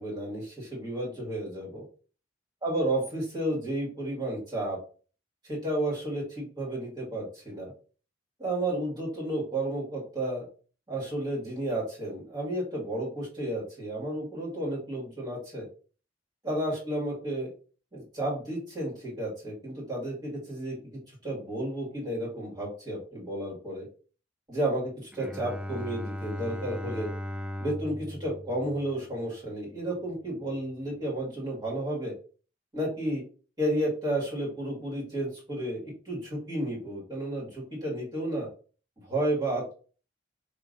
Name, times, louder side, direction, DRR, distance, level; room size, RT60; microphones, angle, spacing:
voice 1, 0.0-1.8 2.6-4.8 5.4-7.7 8.4-10.5 10.9-15.7 16.4-17.5 17.9-23.9 24.5-27.1 27.6-32.1 32.7-33.2 33.6-38.5 39.0-39.7, right 1 dB, 25° right, -5 dB, 2.1 m, -32 dB
Bowed string instrument, 25.1-29.6, left 1 dB, 5° right, 0.3 m, -38 dB
5.0 x 3.1 x 2.6 m, 0.39 s
head